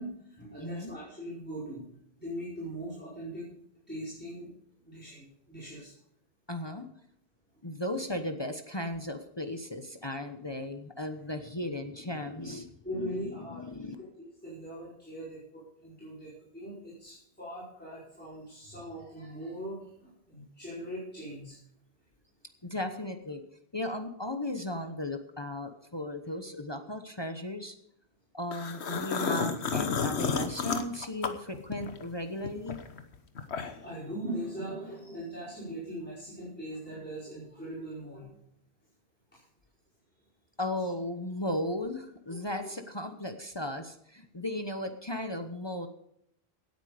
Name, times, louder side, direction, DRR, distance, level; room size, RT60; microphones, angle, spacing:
voice 1, 0.0-1.8 2.2-3.5 3.9-4.5 4.8-5.9 12.8-13.6 14.2-21.6 33.8-38.4 42.3-42.7, right 1 dB, 10° left, -9 dB, 5.1 m, -40 dB
voice 2, 0.6-0.9 6.5-6.9 7.6-12.7 13.4-14.0 22.6-23.4 23.7-27.7 28.3-32.8 40.6-45.9, left 1 dB, 25° left, 6 dB, 1.0 m, -36 dB
sound 1, 28.5-32.1 32.4-33.9, left 5 dB, 85° left, 1.4 m, -31 dB
17.5 x 9.4 x 5.0 m, 0.74 s
omnidirectional pair, 1.1 m